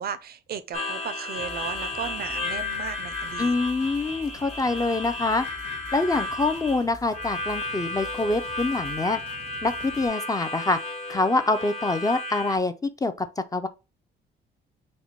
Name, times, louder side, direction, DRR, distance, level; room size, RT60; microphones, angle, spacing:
voice 1, 0.0-3.5, right 8 dB, 55° right, 0.5 m, -35 dB
Harmonica, 0.7-12.6, left 2 dB, 35° left, 1.0 m, -33 dB
sound 1, 1.4-10.1, left 1 dB, 60° left, 1.0 m, -47 dB
voice 2, 3.4-5.4 5.9-9.2 9.6-10.8 11.1-12.7 13.0-13.3 13.5-13.7, left 3 dB, 20° left, 0.4 m, -25 dB
4.2 x 2.2 x 4.3 m
cardioid pair, 90°, 20 cm